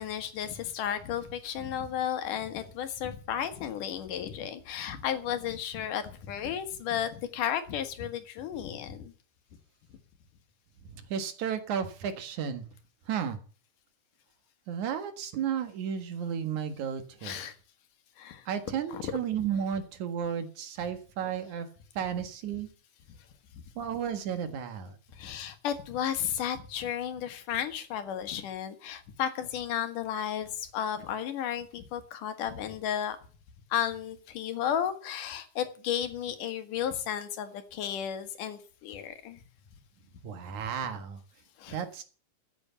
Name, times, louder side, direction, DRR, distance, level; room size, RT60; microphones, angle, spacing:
voice 1, 0.0-9.1 17.2-17.5 18.2-18.5 18.9-19.1 23.5-23.6 25.1-33.2 33.7-39.4 41.6-41.8, left 9 dB, 75° left, 9 dB, 3.0 m, -33 dB
voice 2, 11.1-12.6 13.1-13.4 14.7-17.4 18.5-21.7 22.0-22.7 23.8-24.9 40.2-41.2 41.7-42.0, right 8 dB, 65° right, 9 dB, 3.0 m, -33 dB
14.0 x 8.1 x 7.0 m, 0.39 s
omnidirectional pair, 3.7 m